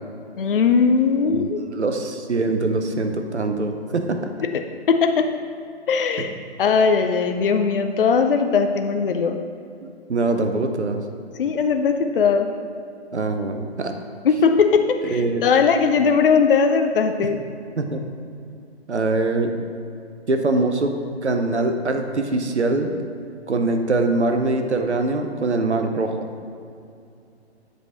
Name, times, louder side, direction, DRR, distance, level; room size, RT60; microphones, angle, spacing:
voice 1, 0.4-1.6 4.4-4.6 4.9-5.3 5.9-6.3 6.6-9.4 11.4-12.5 14.2-17.4, left 5 dB, 55° left, 6 dB, 0.5 m, -19 dB
voice 2, 1.6-4.2 10.1-11.0 13.1-13.9 15.0-15.4 17.8-18.0 18.9-19.5 20.3-22.9 23.5-26.3, right 2 dB, 80° right, 5 dB, 0.8 m, -23 dB
8.0 x 5.0 x 4.3 m, 2.5 s
figure-of-eight pair, 130°, 33 cm